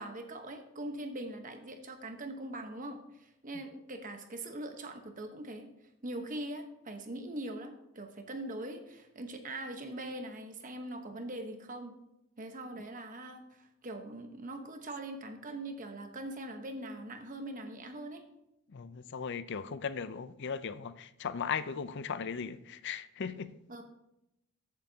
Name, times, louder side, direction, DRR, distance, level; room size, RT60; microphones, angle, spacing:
voice 1, 0.0-5.7 6.0-11.9 12.4-18.2 23.7-23.8, right 1 dB, 40° right, 1.1 m, -42 dB
voice 2, 18.7-23.5, left 6 dB, 55° left, 0.5 m, -37 dB
14.0 x 7.5 x 2.8 m
head